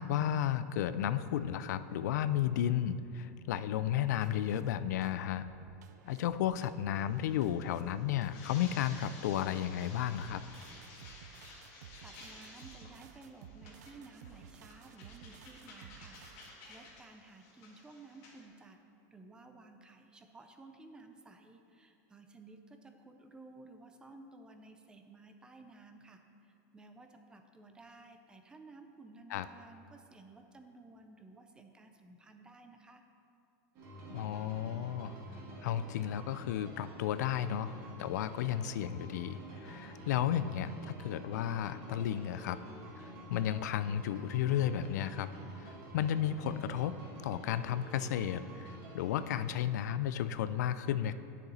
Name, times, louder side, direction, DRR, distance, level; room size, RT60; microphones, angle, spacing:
voice 1, 0.0-5.5 6.1-10.4 29.3-29.5 34.1-35.1 35.6-37.7 38.0-42.6 43.0-45.3 45.6-47.0 47.2-51.1, left 10 dB, 85° left, 13 dB, 0.4 m, -33 dB
sound 1, 3.8-17.0, right 9 dB, 85° right, 0.4 m, -55 dB
sound 2, 7.0-18.4, left 3 dB, 45° left, 1.8 m, -54 dB
voice 2, 11.7-16.2 16.7-18.8 19.1-33.0, right 3 dB, 10° right, 6 dB, 0.4 m, -55 dB
sound 3, 33.7-49.4, right 1 dB, 40° right, 1.9 m, -49 dB
9.9 x 6.7 x 4.2 m, 2.6 s
supercardioid pair, 165°, 9 cm